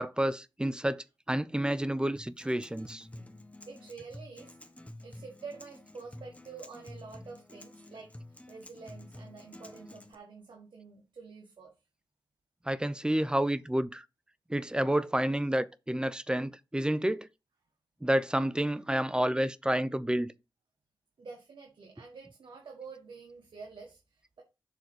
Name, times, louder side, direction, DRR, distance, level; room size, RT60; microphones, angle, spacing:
voice 1, 0.0-3.1 12.7-14.0 14.5-17.3 18.0-20.3, right 1 dB, 10° right, 0.6 m, -29 dB
Acoustic guitar, 2.2-10.1, left 1 dB, 15° left, 1.1 m, -50 dB
voice 2, 3.7-4.6 5.0-8.1 8.5-11.7 21.2-24.4, right 4 dB, 80° right, 1.7 m, -48 dB
7.0 x 3.9 x 6.2 m
wide cardioid pair, 70°, 8 cm